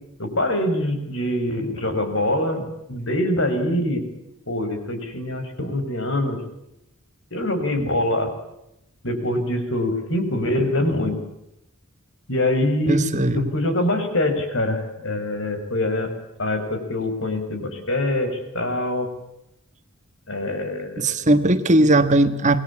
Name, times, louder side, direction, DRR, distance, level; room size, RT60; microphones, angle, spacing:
voice 1, 0.2-4.1 4.5-6.4 7.3-8.3 9.0-11.2 12.3-13.0 13.3-16.1 16.4-19.1 20.3-21.2, left 1 dB, 60° left, 6.1 m, -24 dB
voice 2, 12.9-13.5 21.0-22.6, right 1 dB, 35° right, 1.6 m, -18 dB
27.5 x 20.5 x 8.7 m
head